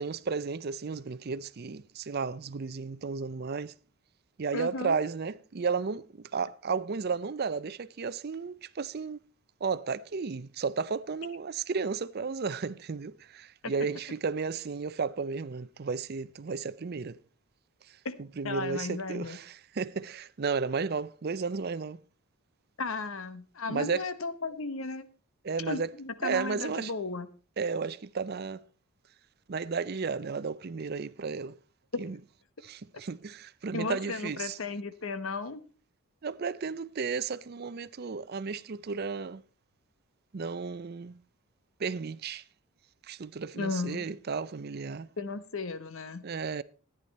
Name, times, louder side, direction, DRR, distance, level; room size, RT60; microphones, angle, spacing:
voice 1, 0.0-3.7 4.4-9.2 9.6-17.2 18.4-22.0 23.7-24.1 25.4-25.9 26.2-26.9 27.6-28.6 29.5-31.5 32.0-32.2 32.6-34.6 36.2-39.4 40.3-41.2 41.8-42.4 43.0-45.1 46.2-46.6, right 5 dB, 45° right, 0.5 m, -33 dB
voice 2, 4.5-5.0 13.6-13.7 18.0-18.1 18.4-19.4 22.8-25.1 25.6-27.3 33.7-35.6 43.5-44.0 45.2-46.2, left 3 dB, 65° left, 1.0 m, -35 dB
14.0 x 10.0 x 4.1 m
head